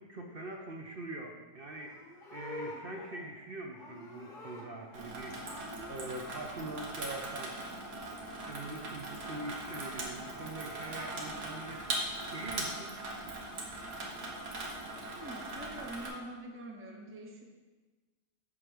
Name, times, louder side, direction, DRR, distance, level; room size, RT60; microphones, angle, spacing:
voice 1, 0.0-5.5 5.9-7.6 8.5-12.9, right 2 dB, 50° right, 1 dB, 0.7 m, -43 dB
Livestock farm animals working animals, 1.7-5.1 5.4-6.7 10.5-11.6, left 2 dB, 35° left, 1.2 m, -48 dB
Water tap faucet / Sink (filling or washing), 4.9-16.1, right 2 dB, 90° right, 1.8 m, -40 dB
voice 2, 14.9-17.4, right 1 dB, 20° right, 1 dB, 0.3 m, -45 dB
8.0 x 3.7 x 6.1 m, 1.3 s
omnidirectional pair, 1.7 m